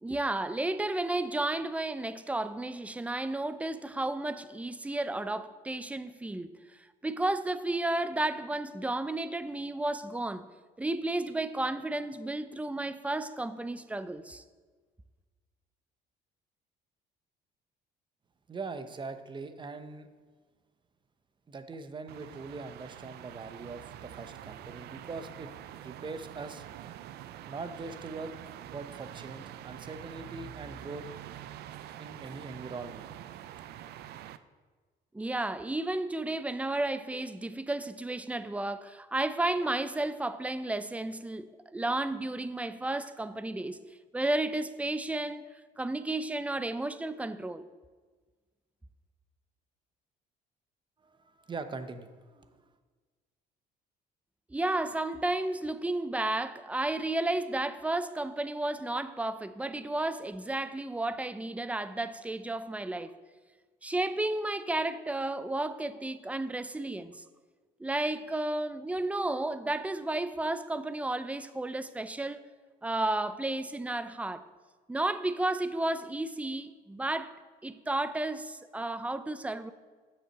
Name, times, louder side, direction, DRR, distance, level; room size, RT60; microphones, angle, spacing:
voice 1, 0.0-6.5 7.0-10.5 10.8-14.4 35.1-43.8 44.1-45.5 45.8-47.7 54.5-63.2 63.8-67.2 67.8-72.4 72.8-74.4 74.9-79.7, right 2 dB, 10° right, 0.5 m, -32 dB
voice 2, 18.5-20.1 21.5-25.5 25.8-26.7 27.5-28.4 28.6-31.0 32.0-33.1 51.0-52.7, right 4 dB, 30° right, 0.8 m, -42 dB
sound 1, 22.1-34.4, right 11 dB, 75° right, 0.5 m, -46 dB
8.1 x 7.2 x 6.6 m
cardioid pair, 110°, 17 cm